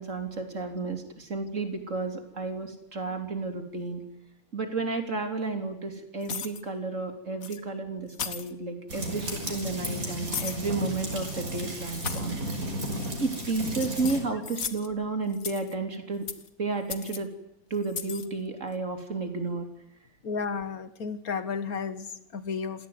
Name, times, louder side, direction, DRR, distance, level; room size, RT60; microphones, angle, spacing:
voice 1, 0.0-4.0 4.5-12.6 13.2-16.3 16.6-17.3 17.7-19.7, right 3 dB, 60° right, 6 dB, 3.7 m, -32 dB
sound 1, 6.2-6.6 7.4-7.6 8.1-8.5 9.2-9.6 10.3-10.6 11.1-11.4 11.9-12.3 12.9-13.3 13.7-14.9 15.3-15.7 16.3-16.5 16.9-17.2 17.8-18.3, left 7 dB, 75° left, 1.8 m, -36 dB
sound 2, 8.9-14.2, equal, 80° right, 6.2 m, -34 dB
voice 2, 20.2-22.9, left 5 dB, 90° left, 12 dB, 2.1 m, -33 dB
27.5 x 17.0 x 9.6 m, 0.76 s
omnidirectional pair, 1.5 m